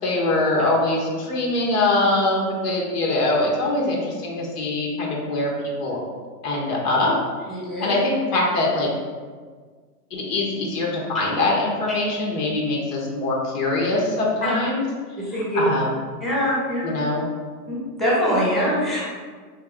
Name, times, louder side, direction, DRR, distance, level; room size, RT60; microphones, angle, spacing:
voice 1, 0.0-5.5 5.8-6.0 6.4-7.1 7.5-8.9 10.1-14.9 15.3-16.0 16.8-17.2, left 2 dB, 75° left, -2 dB, 1.3 m, -23 dB
voice 2, 7.5-7.9 14.4-14.5 15.2-15.6 16.2-16.9 17.7-19.0, equal, ahead, -7 dB, 1.2 m, -23 dB
3.5 x 2.9 x 3.5 m, 1.5 s
hypercardioid pair, 120°, 47 cm